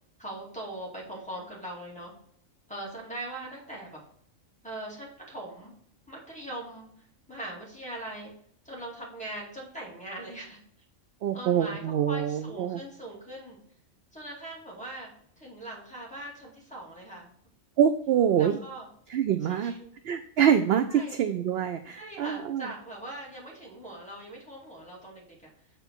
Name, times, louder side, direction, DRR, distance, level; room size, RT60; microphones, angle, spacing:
voice 1, 0.2-2.1 2.7-4.0 4.6-5.7 6.1-8.3 8.6-10.6 11.3-13.6 14.1-15.1 15.4-17.3 18.4-18.9 19.5-19.9 20.9-21.2 21.9-25.5, right 1 dB, 5° left, -4 dB, 2.4 m, -41 dB
voice 2, 11.2-12.8 17.8-18.6 19.1-19.7 20.0-22.7, right 9 dB, 65° right, 8 dB, 0.7 m, -25 dB
6.9 x 4.2 x 6.0 m, 0.64 s
omnidirectional pair, 1.3 m